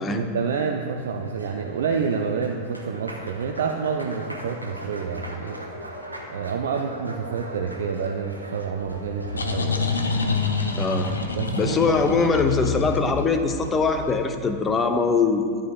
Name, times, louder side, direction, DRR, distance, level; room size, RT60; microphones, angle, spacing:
voice 1, 0.0-5.6 6.3-9.8 11.4-12.0, right 6 dB, 60° right, 2 dB, 0.5 m, -28 dB
Applause, 0.8-12.6, right 1 dB, 85° right, 1.0 m, -40 dB
sound 1, 8.9-14.4, left 3 dB, 75° left, 0.7 m, -27 dB
voice 2, 10.8-11.1 11.5-15.5, left 4 dB, 20° left, 6 dB, 0.7 m, -22 dB
13.5 x 8.6 x 2.3 m, 2.2 s
figure-of-eight pair, 90°, 0 cm